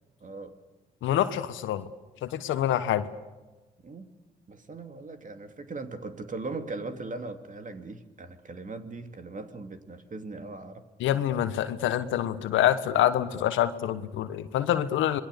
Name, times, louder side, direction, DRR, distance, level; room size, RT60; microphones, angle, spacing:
voice 1, 0.2-0.6 3.8-4.1 4.5-10.8, right 3 dB, 40° right, 6 dB, 2.7 m, -39 dB
voice 2, 1.0-1.8 2.2-3.1 11.0-15.2, left 11 dB, 75° left, 12 dB, 1.3 m, -26 dB
27.0 x 21.0 x 6.8 m, 1.2 s
hypercardioid pair, 45°, 20 cm